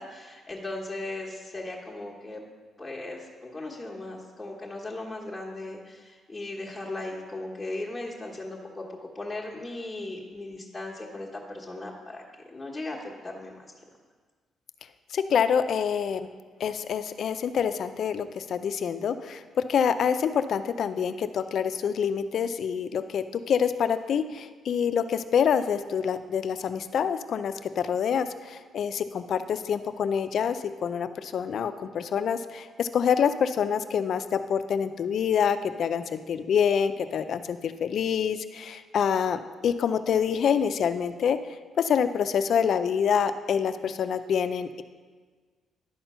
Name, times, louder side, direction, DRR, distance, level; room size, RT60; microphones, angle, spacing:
voice 1, 0.0-2.4 2.8-8.8 9.1-13.7, left 2 dB, 15° left, -3 dB, 1.2 m, -37 dB
voice 2, 15.1-16.3 16.6-19.4 19.7-41.4 41.8-44.8, left 7 dB, 60° left, 12 dB, 0.4 m, -26 dB
11.0 x 4.4 x 5.5 m, 1.5 s
cardioid pair, 90°, 0 cm